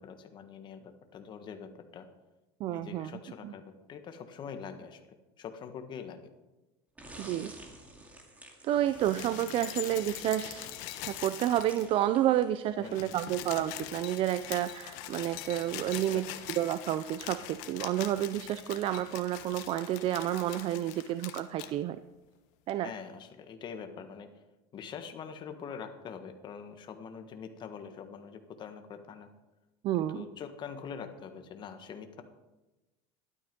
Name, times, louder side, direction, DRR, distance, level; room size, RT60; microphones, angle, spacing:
voice 1, 0.0-2.1 2.7-5.0 5.4-6.2 12.8-13.2 16.0-16.4 22.8-24.3 24.7-29.3 30.0-32.2, left 6 dB, 35° left, 7 dB, 1.6 m, -44 dB
voice 2, 2.6-3.1 3.4-3.5 7.2-7.5 8.6-10.7 11.1-16.3 16.6-22.0 22.7-22.9 29.8-30.3, right 12 dB, 45° right, 13 dB, 0.5 m, -30 dB
sound 1, 7.0-12.9, right 1 dB, 10° right, 2.3 m, -52 dB
sound 2, 8.8-12.1 12.4-12.5 12.7-21.7 22.7-22.8, left 13 dB, 65° left, 1.3 m, -43 dB
12.5 x 12.5 x 5.3 m, 1.1 s
supercardioid pair, 140°, 14 cm